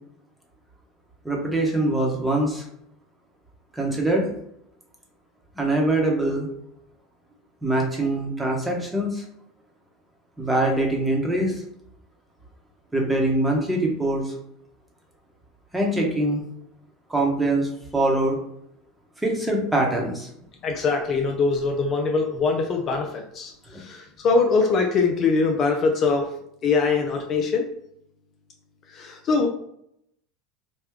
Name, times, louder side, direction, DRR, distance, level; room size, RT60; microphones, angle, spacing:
voice 1, 1.2-2.6 3.7-4.3 5.6-6.5 7.6-9.2 10.4-11.5 12.9-14.3 15.7-16.4 17.1-18.4 19.2-20.3 23.7-23.8, right 1 dB, 10° right, -1 dB, 1.0 m, -23 dB
voice 2, 20.6-23.5 23.8-26.3 26.6-27.7 28.9-29.5, left 4 dB, 40° left, 3 dB, 0.5 m, -22 dB
3.0 x 2.3 x 3.6 m, 0.74 s
supercardioid pair, 105°, 0 cm